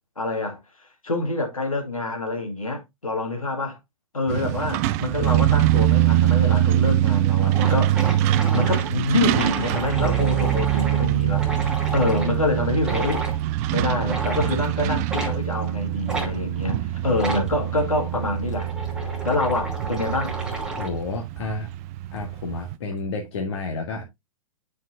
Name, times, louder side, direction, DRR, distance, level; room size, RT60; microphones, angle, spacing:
voice 1, 0.2-0.6 1.0-3.8 4.1-8.0 8.5-11.5 11.9-13.2 13.7-18.7 19.2-20.3, left 2 dB, 80° left, 2.4 m, -26 dB
Truck, 4.3-22.7, right 13 dB, 30° right, 0.4 m, -23 dB
sound 1, 7.5-12.4 12.8-13.4 14.0-14.6 15.1-15.4 16.1-16.3 17.1-17.5 18.2-21.0, right 2 dB, 5° right, 2.4 m, -32 dB
voice 2, 20.8-21.7 22.1-24.0, left 3 dB, 50° left, 1.8 m, -30 dB
9.6 x 5.2 x 2.8 m
figure-of-eight pair, 110°, 18 cm